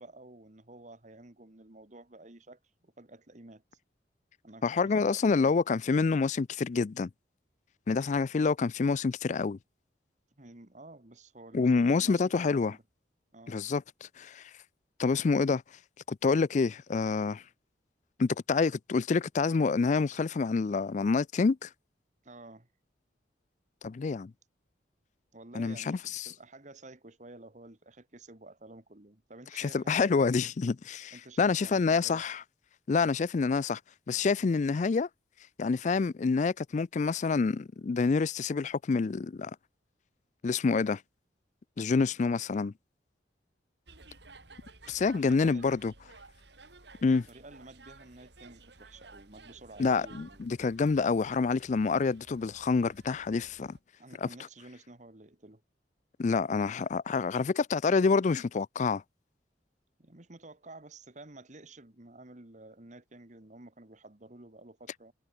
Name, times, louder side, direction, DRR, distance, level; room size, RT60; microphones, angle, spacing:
voice 1, 0.0-3.6 4.4-5.5 10.4-12.8 13.3-13.6 22.2-22.7 25.3-30.3 31.1-32.3 45.1-45.8 47.3-50.5 54.0-55.6 60.0-65.1, right 2 dB, 45° right, 1.8 m, -51 dB
voice 2, 4.6-7.1 7.9-9.6 11.5-12.7 13.5-14.4 15.0-15.6 16.1-17.4 18.2-21.7 23.8-24.3 25.5-26.3 29.6-32.4 32.9-33.8 34.1-35.1 35.6-39.5 40.4-41.0 41.8-42.7 44.9-45.9 47.0-47.3 49.8-53.8 54.2-54.3 56.2-59.0, left 4 dB, 40° left, 0.4 m, -27 dB
sound 1, 43.9-53.8, right 3 dB, 75° right, 6.7 m, -55 dB
head